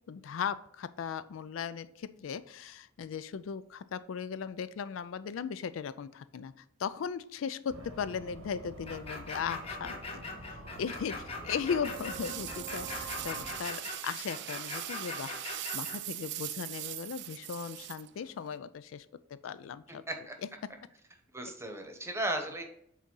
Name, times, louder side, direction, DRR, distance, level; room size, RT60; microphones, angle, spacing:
voice 1, 0.1-6.5 6.8-10.2 10.8-20.0, left 7 dB, 85° left, 14 dB, 0.4 m, -37 dB
sound 1, 7.7-13.6, right 2 dB, 85° right, 1.2 m, -46 dB
sound 2, 8.9-16.0, left 3 dB, 30° left, 1.0 m, -41 dB
sound 3, 11.8-18.6, right 14 dB, 60° right, 0.4 m, -41 dB
voice 2, 21.3-22.6, right 1 dB, 15° right, 4 dB, 0.9 m, -35 dB
6.1 x 4.1 x 3.8 m, 0.73 s
head